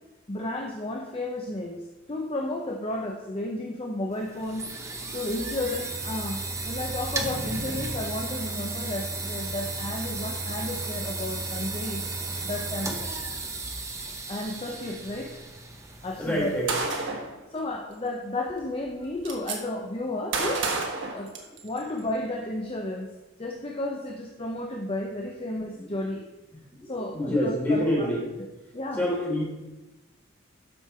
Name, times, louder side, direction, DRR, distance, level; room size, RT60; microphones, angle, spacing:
voice 1, 0.3-4.7 5.1-12.0 12.4-13.2 14.3-15.4 16.0-16.5 17.5-20.7 21.1-21.3 21.6-23.1 23.4-26.2 26.9-28.1 28.7-29.0, left 1 dB, 30° left, 1 dB, 0.8 m, -32 dB
sound 1, 4.1-16.9, right 3 dB, 15° right, 0.8 m, -34 dB
voice 2, 16.2-17.4 25.7-25.9 26.7-28.2 28.9-29.4, equal, 10° left, -6 dB, 3.4 m, -27 dB
Gunshot gunfire, 16.7-17.3 18.5-18.6 18.9-19.6 20.3-21.8, right 3 dB, 65° right, 1.4 m, -29 dB
12.0 x 5.4 x 4.5 m, 1.1 s
head